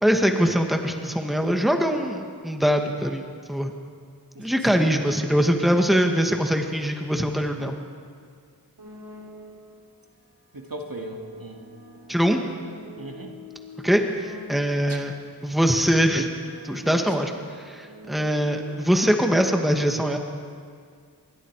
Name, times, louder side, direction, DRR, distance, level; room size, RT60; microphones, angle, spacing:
voice 1, 0.0-3.7 4.4-7.8 12.1-12.4 13.8-15.1 15.4-16.3 16.6-17.3 17.6-20.2, equal, ahead, 3 dB, 2.1 m, -22 dB
sound 1, 8.8-9.9 10.6-15.1 15.9-19.3, left 2 dB, 80° right, 4.5 m, -46 dB
voice 2, 10.5-11.6 13.0-13.3 14.8-15.0 16.8-17.1, right 1 dB, 60° right, 1 dB, 2.5 m, -37 dB
26.5 x 22.5 x 4.9 m, 2.1 s
wide cardioid pair, 45°, 38 cm